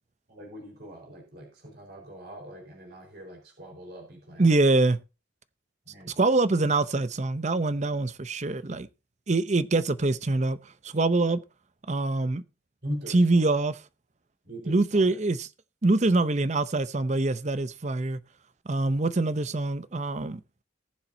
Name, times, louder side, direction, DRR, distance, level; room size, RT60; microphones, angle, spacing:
voice 1, 0.3-4.5 5.9-6.1 12.8-13.5 14.4-14.8, equal, 55° right, 4.4 m, -41 dB
voice 2, 4.4-5.0 6.2-8.9 9.3-10.6 10.8-11.4 11.9-12.4 13.1-13.8 14.7-15.5 15.8-18.2 18.7-20.4, right 2 dB, 35° right, 0.6 m, -24 dB
19.5 x 7.3 x 2.7 m
head